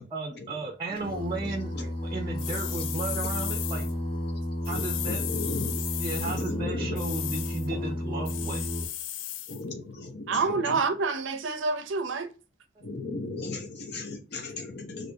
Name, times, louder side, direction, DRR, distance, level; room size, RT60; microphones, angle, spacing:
voice 1, 0.0-3.9 4.6-5.3 6.0-8.7, right 2 dB, 25° right, 0.5 m, -35 dB
Singing, 1.0-8.9, left 1 dB, 30° left, 1.5 m, -32 dB
voice 2, 1.1-1.8 4.7-5.8 6.2-7.0 9.5-10.8 12.8-15.1, left 3 dB, 60° left, 0.9 m, -36 dB
sound 1, 2.4-3.9 4.6-6.5 7.0-7.7 8.3-9.6, left 11 dB, 80° left, 0.4 m, -35 dB
voice 3, 10.3-12.3, right 4 dB, 75° right, 0.6 m, -27 dB
4.9 x 2.7 x 2.7 m
head